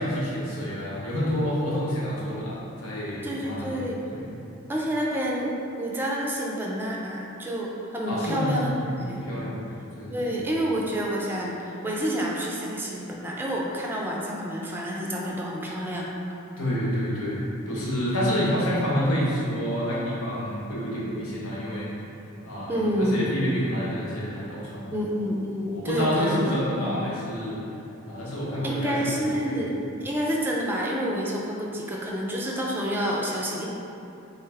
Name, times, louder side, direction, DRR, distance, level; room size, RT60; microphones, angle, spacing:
voice 1, 0.0-4.3 8.1-8.9 9.1-9.7 10.0-10.4 16.6-21.9 22.4-24.9 25.6-27.6 28.0-29.6, equal, 90° left, -7 dB, 1.2 m, -28 dB
voice 2, 3.2-4.0 4.7-5.5 5.8-9.3 10.1-16.1 22.7-23.4 24.9-27.0 28.6-33.7, equal, 10° right, -3 dB, 0.4 m, -28 dB
3.9 x 3.3 x 3.4 m, 2.8 s
head